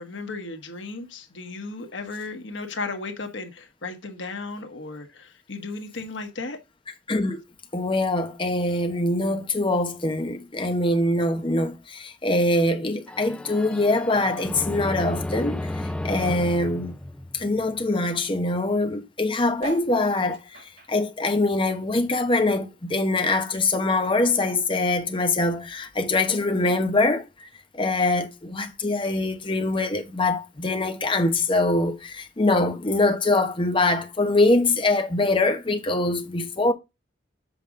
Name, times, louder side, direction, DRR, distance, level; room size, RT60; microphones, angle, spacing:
voice 1, 0.0-6.6, left 3 dB, 90° left, 1.3 m, -35 dB
voice 2, 7.1-7.4 7.7-15.7 16.0-16.9 17.3-20.4 20.9-27.5 27.7-36.7, left 2 dB, 30° left, 1.0 m, -23 dB
sound 1, 13.1-17.8, left 1 dB, 5° left, 0.5 m, -33 dB
sound 2, 19.5-22.3 22.7-24.2 24.7-24.8 24.9-25.0 25.2-25.6 26.4-26.5, right 3 dB, 65° right, 4.8 m, -44 dB
7.9 x 5.1 x 3.7 m
head